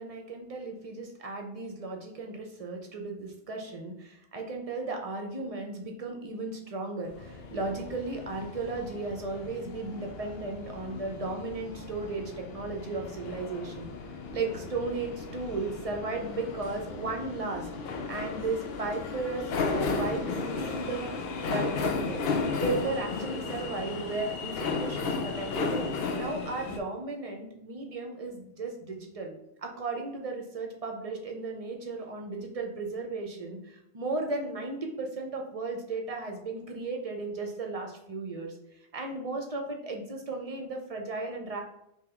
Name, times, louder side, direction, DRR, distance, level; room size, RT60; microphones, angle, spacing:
voice 1, 0.0-13.9 14.3-17.7 18.1-22.2 22.6-25.9 26.2-29.3 29.6-38.6 38.9-41.6, right 3 dB, 40° right, 2 dB, 0.6 m, -35 dB
sound 1, 7.1-26.8, left 4 dB, 70° left, 0.8 m, -35 dB
sound 2, 7.1-24.6, left 4 dB, 50° left, 1.2 m, -51 dB
3.8 x 3.0 x 4.3 m, 0.81 s
omnidirectional pair, 1.1 m